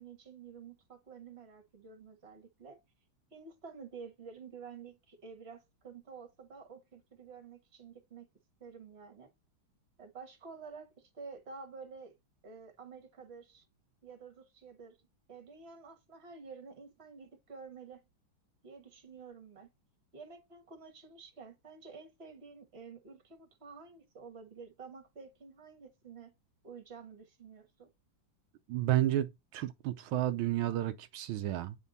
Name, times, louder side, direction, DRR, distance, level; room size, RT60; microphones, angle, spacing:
voice 1, 0.0-2.8 3.3-8.3 8.6-9.3 10.0-12.1 12.4-13.6 14.0-15.0 15.3-18.1 18.6-19.7 20.1-26.3 26.6-27.9, right 5 dB, 35° right, 1.7 m, -50 dB
voice 2, 28.7-31.8, right 13 dB, 85° right, 1.4 m, -31 dB
9.0 x 3.6 x 4.0 m
omnidirectional pair, 2.2 m